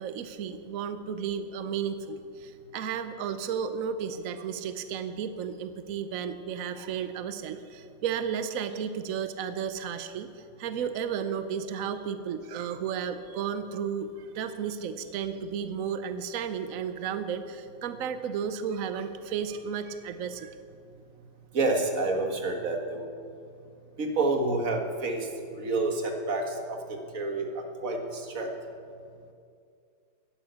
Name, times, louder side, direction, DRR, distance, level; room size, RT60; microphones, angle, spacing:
voice 1, 0.0-20.6, right 7 dB, 80° right, 10 dB, 0.7 m, -33 dB
voice 2, 21.5-23.1 24.0-28.5, right 2 dB, 45° right, 3 dB, 1.7 m, -29 dB
10.5 x 10.5 x 8.1 m, 2.3 s
omnidirectional pair, 2.3 m